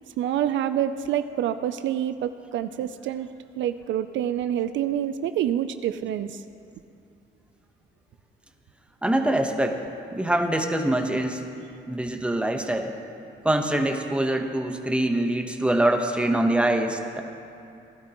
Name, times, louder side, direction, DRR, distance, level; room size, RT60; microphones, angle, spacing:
voice 1, 0.2-3.3 3.6-6.4, right 10 dB, 70° right, 11 dB, 0.4 m, -27 dB
voice 2, 9.0-9.8 10.1-11.4 11.9-12.9 13.4-17.2, right 1 dB, 5° right, 4 dB, 1.0 m, -24 dB
16.5 x 12.0 x 3.0 m, 2.6 s
cardioid pair, 90°, 20 cm